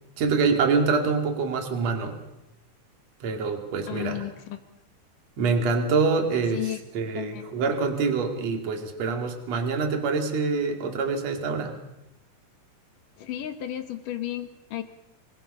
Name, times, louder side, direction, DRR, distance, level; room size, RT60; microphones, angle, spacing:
voice 1, 0.2-2.2 3.2-4.2 5.4-11.8, right 4 dB, 45° right, 4 dB, 3.2 m, -25 dB
voice 2, 3.9-4.6 6.5-6.8 7.2-7.5 13.2-14.8, left 13 dB, 65° left, 8 dB, 2.5 m, -33 dB
26.5 x 20.5 x 5.6 m, 0.89 s
omnidirectional pair, 4.7 m